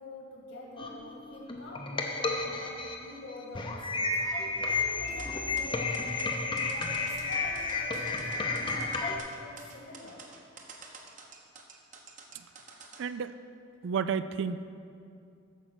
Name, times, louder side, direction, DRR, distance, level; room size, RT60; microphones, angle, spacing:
voice 1, 0.0-10.2, left 2 dB, 65° left, -3 dB, 1.8 m, -46 dB
sound 1, 0.8-9.2, left 3 dB, 25° left, 0.6 m, -32 dB
sound 2, 5.1-13.0, right 4 dB, 40° right, 1.0 m, -49 dB
voice 2, 13.0-13.4 13.8-14.6, right 6 dB, 60° right, 12 dB, 0.3 m, -31 dB
13.5 x 5.1 x 6.1 m, 2.5 s
head